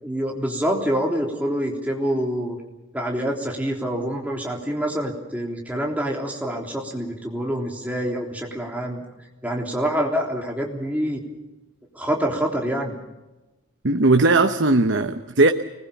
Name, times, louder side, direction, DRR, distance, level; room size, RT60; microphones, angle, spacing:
voice 1, 0.0-2.6 2.9-9.0 9.4-11.2 11.9-12.9, equal, 5° right, -1 dB, 3.4 m, -26 dB
voice 2, 13.8-15.5, right 2 dB, 60° right, 6 dB, 1.0 m, -18 dB
25.0 x 20.5 x 7.1 m, 1.0 s
head